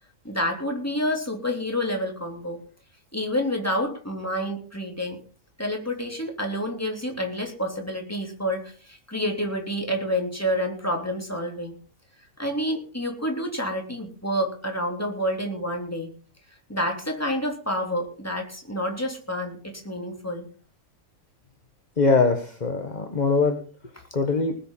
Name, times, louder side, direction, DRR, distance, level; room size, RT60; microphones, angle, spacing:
voice 1, 0.3-2.6 3.1-5.2 5.6-11.8 12.4-16.1 16.7-20.5, equal, 10° left, 2 dB, 3.4 m, -28 dB
voice 2, 22.0-23.7 24.1-24.5, left 4 dB, 30° left, 5 dB, 1.6 m, -22 dB
19.5 x 7.4 x 5.7 m, 0.40 s
omnidirectional pair, 1.4 m